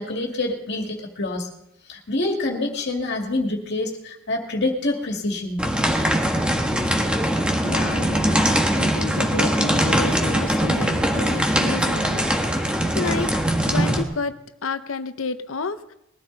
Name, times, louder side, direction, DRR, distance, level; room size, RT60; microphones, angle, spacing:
voice 1, 0.0-1.5 1.9-5.7 6.0-6.1 6.8-6.9, left 2 dB, 60° left, 2 dB, 2.2 m, -26 dB
sound 1, 5.6-14.0, equal, 5° right, 1.7 m, -21 dB
voice 2, 7.6-13.3 13.7-14.4 14.6-15.9, left 4 dB, 85° left, 11 dB, 0.8 m, -31 dB
21.0 x 13.5 x 4.0 m, 0.84 s
head